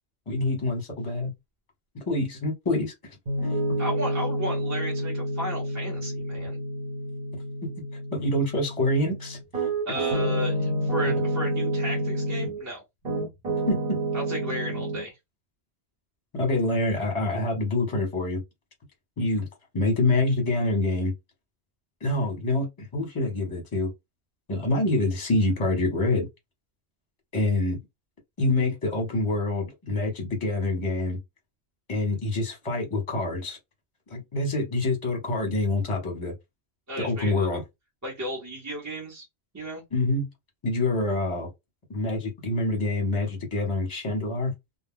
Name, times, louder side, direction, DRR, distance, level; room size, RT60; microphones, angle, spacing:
voice 1, 0.3-1.3 1.9-2.9 3.4-3.6 7.6-7.7 8.1-9.7 13.7-13.8 16.3-18.4 19.2-19.5 19.7-21.1 22.0-23.9 24.5-26.3 27.3-27.8 28.4-31.2 31.9-33.6 34.1-36.3 37.0-37.6 39.9-40.3 40.6-41.5 41.9-44.5, left 2 dB, 30° left, 0.9 m, -26 dB
Piano, 3.3-12.6 13.0-15.0, right 1 dB, 60° right, 1.3 m, -29 dB
voice 2, 3.8-6.6 9.9-12.8 14.1-15.2 36.9-37.5 38.0-39.2 39.5-39.8, equal, 15° right, 0.7 m, -34 dB
2.3 x 2.1 x 3.5 m
omnidirectional pair, 1.2 m